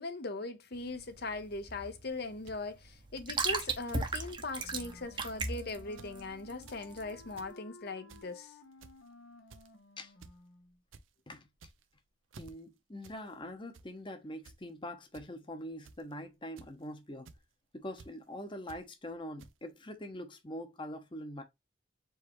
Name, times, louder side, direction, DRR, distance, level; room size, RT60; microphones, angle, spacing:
voice 1, 0.0-8.5, left 3 dB, 55° left, 0.8 m, -40 dB
sound 1, 0.7-7.4, right 4 dB, 25° right, 0.7 m, -37 dB
sound 2, 2.5-2.6 3.2-3.3 3.9-4.1 4.3-4.7 5.3-5.5 5.8-6.1 6.5-6.8 7.2-7.5 8.1-8.4 8.8-9.1 9.5-9.8 10.2-10.4 10.7-11.0 11.5-11.9 12.3-12.5 13.0-13.2 13.5-13.9 14.4-14.6 15.1-15.2 15.8-16.1 16.6-16.8 17.3-17.4 18.0-18.1 18.7-18.8 19.4-19.5, right 4 dB, 90° right, 0.6 m, -53 dB
Wind instrument woodwind instrument, 4.6-10.8, left 2 dB, 80° left, 1.0 m, -56 dB
voice 2, 12.4-17.3 17.7-21.4, left 1 dB, 25° left, 0.8 m, -43 dB
4.7 x 3.1 x 3.0 m
head